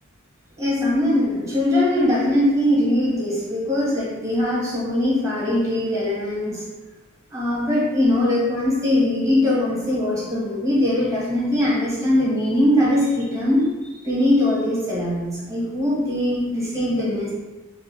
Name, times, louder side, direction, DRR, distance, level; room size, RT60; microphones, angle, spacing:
voice 1, 0.6-6.6 7.3-13.7 14.0-17.3, left 1 dB, 15° right, -6 dB, 1.0 m, -21 dB
3.2 x 2.4 x 3.3 m, 1.2 s
head